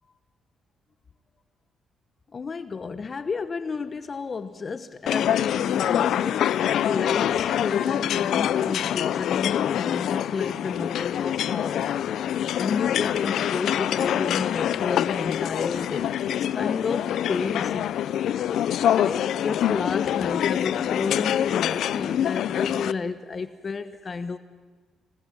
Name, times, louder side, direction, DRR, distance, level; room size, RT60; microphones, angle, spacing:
voice 1, 2.3-6.5 6.8-11.8 12.6-17.9 18.9-24.4, left 4 dB, 40° left, 11 dB, 1.1 m, -31 dB
sound 1, 5.1-22.9, left 10 dB, 75° left, 0.6 m, -25 dB
26.0 x 19.0 x 8.7 m, 1.4 s
cardioid pair, 90°, 0 cm